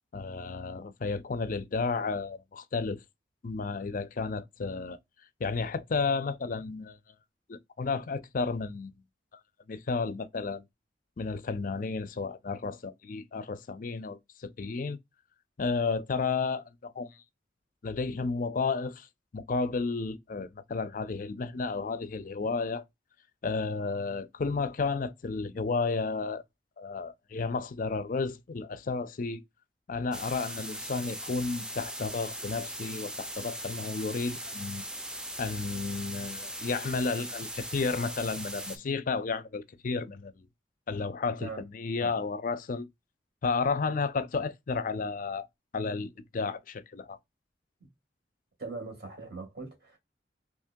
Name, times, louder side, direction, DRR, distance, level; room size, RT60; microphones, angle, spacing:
voice 1, 0.1-3.0 3.4-5.0 5.4-7.0 7.5-9.0 9.7-10.6 11.2-15.0 15.6-17.2 17.8-19.1 19.3-22.8 23.4-26.4 26.8-29.4 29.9-34.8 35.4-40.5 40.9-42.9 43.4-45.5 45.7-47.2, left 4 dB, 50° left, 0.5 m, -32 dB
sound 1, 30.1-38.8, right 1 dB, 5° right, 0.5 m, -39 dB
voice 2, 48.6-50.0, right 3 dB, 60° right, 2.3 m, -40 dB
3.6 x 3.1 x 2.6 m
head